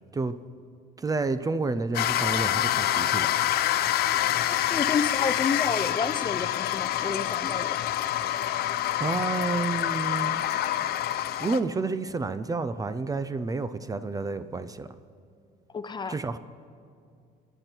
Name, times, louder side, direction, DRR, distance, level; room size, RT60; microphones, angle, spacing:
voice 1, 1.0-3.3 9.0-10.4 11.4-14.9 16.1-16.4, right 3 dB, 20° right, 12 dB, 0.6 m, -30 dB
sound 1, 1.9-11.6, left 12 dB, 65° left, 0.7 m, -26 dB
voice 2, 4.6-7.8 15.7-16.1, left 5 dB, 25° left, 12 dB, 0.6 m, -30 dB
27.0 x 11.0 x 4.5 m, 2.3 s
cardioid pair, 110°, 17 cm